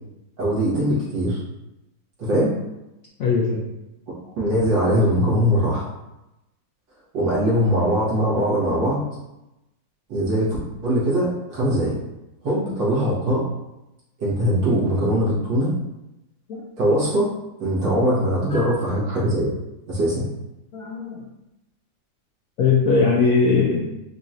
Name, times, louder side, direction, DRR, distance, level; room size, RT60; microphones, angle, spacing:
voice 1, 0.4-1.4 2.2-2.5 4.4-5.8 7.1-9.0 10.1-10.6 10.8-11.9 12.4-13.4 14.2-15.7 16.8-17.3 17.6-19.5 19.9-20.3, equal, 75° right, -8 dB, 2.2 m, -21 dB
voice 2, 3.2-3.6 16.5-16.6 18.5-18.7 20.7-21.2 22.6-24.0, left 4 dB, 70° left, -4 dB, 0.8 m, -20 dB
4.8 x 2.9 x 2.5 m, 0.93 s
omnidirectional pair, 2.1 m